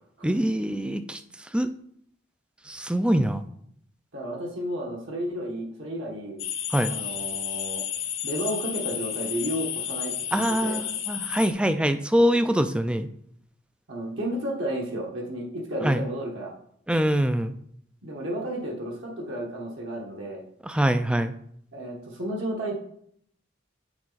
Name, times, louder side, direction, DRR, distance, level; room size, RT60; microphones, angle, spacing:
voice 1, 0.2-1.2 1.5-1.7 2.7-3.4 6.7-6.9 10.3-13.1 15.8-16.0 16.9-17.5 20.6-21.3, equal, 5° right, 10 dB, 0.3 m, -24 dB
voice 2, 4.1-6.4 6.9-7.8 8.2-10.8 13.9-16.5 18.0-20.4 21.7-22.7, right 1 dB, 65° right, -2 dB, 1.3 m, -32 dB
sound 1, 6.4-11.5, left 10 dB, 65° left, 0.9 m, -32 dB
8.8 x 4.2 x 3.9 m, 0.67 s
head